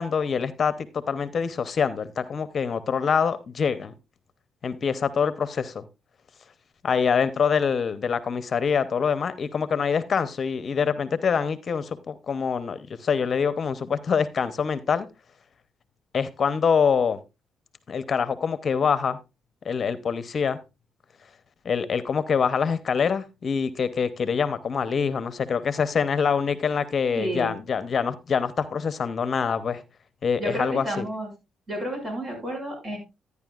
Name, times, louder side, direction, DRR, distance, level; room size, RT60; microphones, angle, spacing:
voice 1, 0.0-3.9 4.6-5.8 6.8-15.1 16.1-17.2 17.9-19.2 19.6-20.6 21.6-29.8 30.2-31.0, left 6 dB, 45° left, 13 dB, 0.7 m, -25 dB
voice 2, 27.1-27.5 30.4-31.3 31.7-33.0, equal, 45° right, 3 dB, 6.1 m, -31 dB
12.5 x 9.6 x 2.4 m, 0.25 s
cardioid pair, 90°, 0 cm